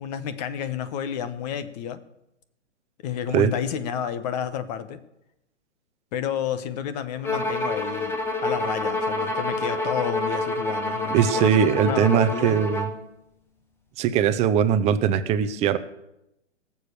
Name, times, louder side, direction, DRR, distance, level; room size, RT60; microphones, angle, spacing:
voice 1, 0.0-2.0 3.0-5.0 6.1-12.7, left 9 dB, 35° left, 12 dB, 1.1 m, -31 dB
Bowed string instrument, 7.2-13.0, left 2 dB, 5° left, 0.9 m, -27 dB
voice 2, 11.1-12.9 14.0-15.8, right 8 dB, 20° right, 11 dB, 0.7 m, -21 dB
18.5 x 7.1 x 6.9 m, 0.87 s
hypercardioid pair, 130°, 36 cm